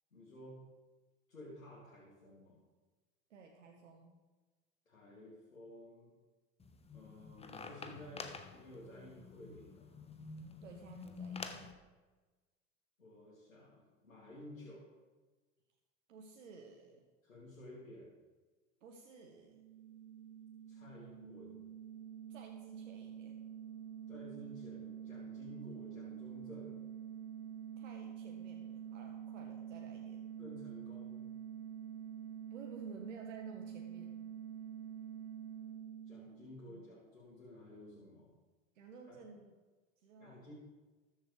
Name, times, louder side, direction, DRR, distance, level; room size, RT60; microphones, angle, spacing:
voice 1, 0.1-0.6 1.3-2.6 4.9-6.1 6.9-9.9 13.0-14.8 17.2-18.1 20.7-21.6 24.1-26.8 30.4-31.2 36.1-38.3 39.1-39.2 40.2-40.5, left 1 dB, 85° left, -7 dB, 2.7 m, -53 dB
voice 2, 3.3-4.2 10.6-11.7 16.1-17.1 18.8-19.6 22.3-23.4 27.8-30.2 32.5-34.1 36.7-36.9 38.7-39.6 40.0-40.5, right 4 dB, 70° right, 2 dB, 1.4 m, -54 dB
sound 1, 6.6-11.7, left 4 dB, 15° left, 1.1 m, -49 dB
sound 2, 19.4-36.9, right 9 dB, 35° right, 1.0 m, -47 dB
20.0 x 7.3 x 3.3 m, 1.3 s
figure-of-eight pair, 70°, 39 cm